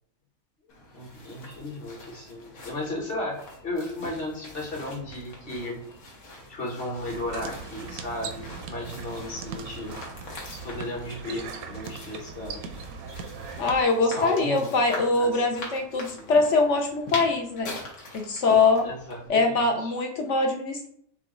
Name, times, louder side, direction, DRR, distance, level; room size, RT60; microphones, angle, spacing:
sound 1, 0.7-19.3, left 2 dB, 85° left, 1.7 m, -43 dB
voice 1, 0.9-5.8 6.5-10.0 10.5-12.6 14.0-14.7 15.2-15.4 16.1-16.3 18.8-20.0, left 1 dB, 40° left, -2 dB, 1.2 m, -35 dB
sound 2, 7.1-13.8, right 5 dB, 75° right, 1.1 m, -39 dB
voice 2, 13.6-17.7 18.1-18.9 19.3-20.9, left 3 dB, 60° left, 3 dB, 0.8 m, -23 dB
6.0 x 2.3 x 3.6 m, 0.65 s
omnidirectional pair, 1.6 m